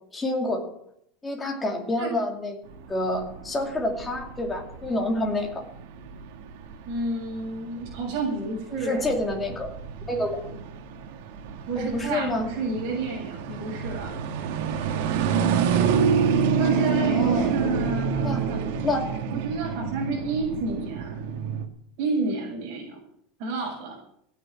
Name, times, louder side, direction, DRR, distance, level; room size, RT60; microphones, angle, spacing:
voice 1, 0.1-0.6 1.2-2.6 2.9-5.6 8.7-9.7 10.1-10.4 11.8-12.5 13.5-13.6 17.0-17.5 18.2-18.4 18.8-19.2, left 1 dB, 10° left, 1 dB, 2.5 m, -28 dB
sound 1, 2.7-21.7, right 6 dB, 60° right, 1.9 m, -28 dB
voice 2, 6.9-9.1 11.7-14.1 16.6-18.7 19.3-21.1 22.0-23.0 23.4-24.0, right 3 dB, 45° right, -5 dB, 6.3 m, -30 dB
15.5 x 9.6 x 7.6 m, 0.73 s
supercardioid pair, 175°, 0 cm